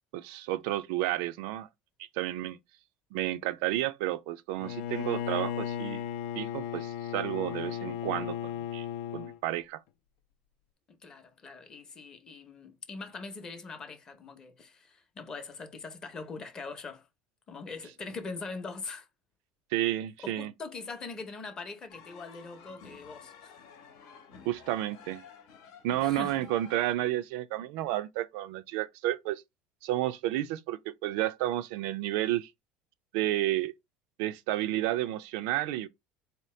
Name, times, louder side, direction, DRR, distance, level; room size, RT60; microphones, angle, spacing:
voice 1, 0.1-1.7 2.2-2.6 3.1-6.0 6.4-8.9 9.1-9.8 19.7-20.5 24.5-25.2 25.8-29.4 29.8-32.5 33.1-33.7 34.2-35.9, right 14 dB, 70° right, 0.4 m, -31 dB
Bowed string instrument, 4.6-9.4, left 10 dB, 70° left, 0.4 m, -35 dB
voice 2, 10.9-17.1 17.5-19.1 20.2-23.6 26.0-26.5, left 4 dB, 20° left, 0.7 m, -42 dB
sound 1, 21.9-26.9, left 6 dB, 90° left, 1.0 m, -52 dB
4.0 x 2.8 x 3.1 m
cardioid pair, 170°, 3 cm